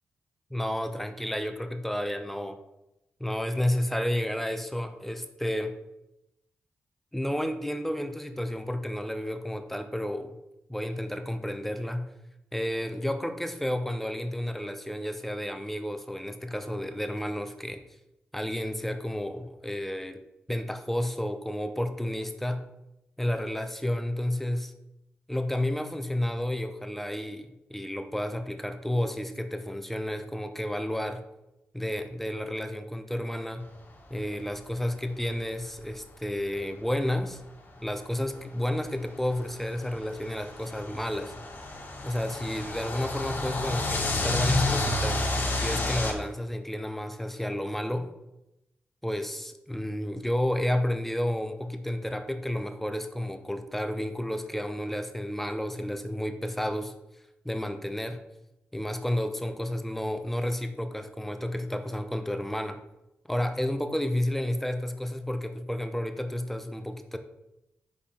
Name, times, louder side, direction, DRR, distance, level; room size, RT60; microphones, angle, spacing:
voice 1, 0.5-2.6 3.2-5.8 7.1-10.4 10.7-12.1 12.5-17.8 18.3-20.2 20.5-22.6 23.2-24.7 25.3-31.2 31.7-33.7 34.1-37.4 37.8-41.3 42.0-45.2 45.6-48.1 49.0-56.9 57.4-58.2 58.7-62.8 63.3-67.2, left 1 dB, 5° left, 7 dB, 0.7 m, -31 dB
sound 1, 35.1-35.2 35.8-35.9 36.9-37.0 38.5-46.1, left 2 dB, 45° left, 1.7 m, -30 dB
5.3 x 5.0 x 4.3 m, 0.90 s
cardioid pair, 60°, 5 cm